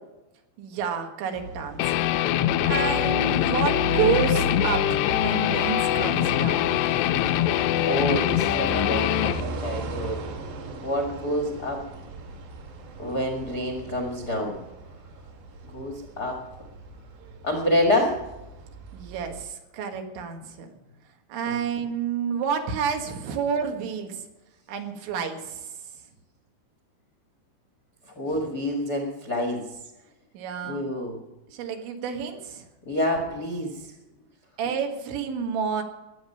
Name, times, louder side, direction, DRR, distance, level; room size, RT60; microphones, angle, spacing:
voice 1, 0.6-2.1 2.6-6.7 18.9-20.7 21.3-24.2 24.7-25.7 28.3-28.4 30.3-30.8 31.5-32.6 34.6-35.8, right 6 dB, 85° right, 4 dB, 4.0 m, -29 dB
sound 1, 1.4-19.4, right 2 dB, 70° right, 4.2 m, -36 dB
Guitar, 1.8-9.4, left 13 dB, 80° left, 2.5 m, -23 dB
voice 2, 7.8-10.2 10.8-11.8 13.0-14.6 15.7-16.4 17.4-18.2 21.4-21.6 28.0-29.8 30.7-31.2 32.8-33.9, left 1 dB, 60° left, 1 dB, 1.0 m, -27 dB
20.5 x 8.4 x 5.6 m, 1.0 s
omnidirectional pair, 5.2 m